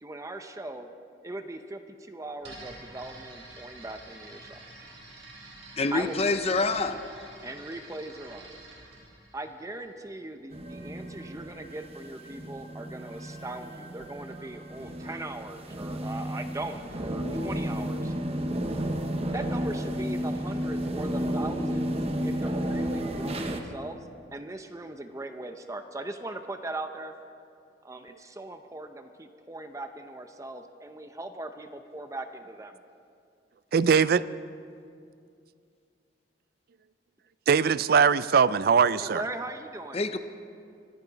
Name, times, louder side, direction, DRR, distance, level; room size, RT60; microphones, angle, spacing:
voice 1, 0.0-0.9 1.2-4.6 5.9-6.2 7.4-8.5 9.3-18.1 19.3-21.9 22.2-24.1 24.3-27.1 27.8-32.8 39.0-40.0, right 2 dB, 20° right, 7 dB, 0.6 m, -39 dB
sound 1, 2.4-10.2, right 2 dB, 75° right, 4.1 m, -48 dB
voice 2, 5.8-7.0 39.9-40.2, left 3 dB, 35° left, 9 dB, 0.7 m, -26 dB
sound 2, 10.5-23.6, equal, 35° right, 1.0 m, -32 dB
voice 3, 33.7-34.2 37.5-39.2, right 6 dB, 55° right, 17 dB, 0.4 m, -21 dB
24.5 x 14.5 x 4.0 m, 2.4 s
head